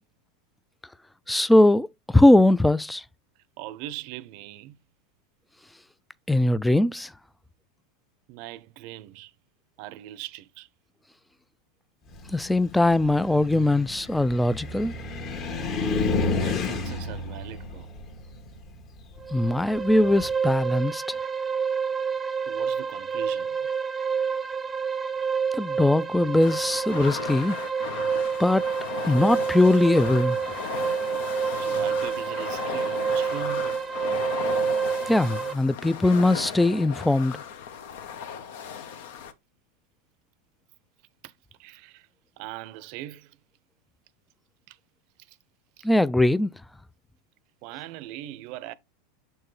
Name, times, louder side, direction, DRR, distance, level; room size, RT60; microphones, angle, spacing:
voice 1, 1.3-3.0 6.3-7.1 12.3-14.9 19.3-21.0 25.5-27.6 28.4-28.7 29.0-30.4 35.1-37.4 45.8-46.5, left 1 dB, 5° left, 0.3 m, -21 dB
voice 2, 3.6-4.8 8.3-9.3 9.8-10.7 16.0-17.9 22.5-23.7 31.6-33.8 41.2-41.3 41.6-42.1 42.4-43.4 44.7-44.8 45.3-45.4 45.8-45.9 47.6-48.7, right 14 dB, 55° right, 0.6 m, -40 dB
Car, 12.1-20.3, left 3 dB, 40° left, 1.4 m, -31 dB
sound 1, 19.2-35.5, right 6 dB, 15° right, 0.7 m, -28 dB
sound 2, 26.4-39.3, left 8 dB, 70° left, 0.9 m, -36 dB
6.8 x 4.5 x 3.1 m
hypercardioid pair, 110°, 0 cm